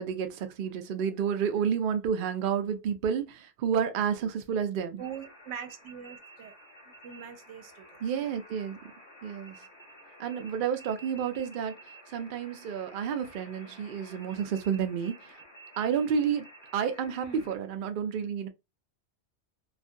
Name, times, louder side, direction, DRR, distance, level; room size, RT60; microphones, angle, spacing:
voice 1, 0.0-5.0 8.0-8.8 9.2-9.6 10.2-11.7 12.1-15.4 15.8-16.5 16.7-18.5, right 7 dB, 60° right, 0.6 m, -30 dB
sound 1, 5.0-17.6, right 1 dB, 50° left, 1.0 m, -52 dB
voice 2, 5.0-6.5 6.9-8.3 17.2-17.4, right 8 dB, 90° right, 0.9 m, -43 dB
2.5 x 2.3 x 2.5 m
omnidirectional pair, 1.2 m